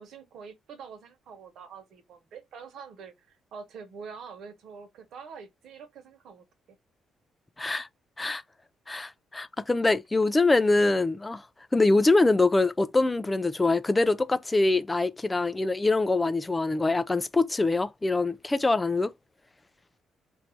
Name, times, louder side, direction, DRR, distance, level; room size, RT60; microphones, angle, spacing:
voice 1, 0.0-6.8, right 6 dB, 75° right, 1.2 m, -45 dB
voice 2, 7.6-7.9 8.2-8.4 8.9-11.4 11.7-19.1, left 2 dB, 20° left, 0.4 m, -24 dB
3.1 x 2.7 x 4.4 m
cardioid pair, 90°, 0 cm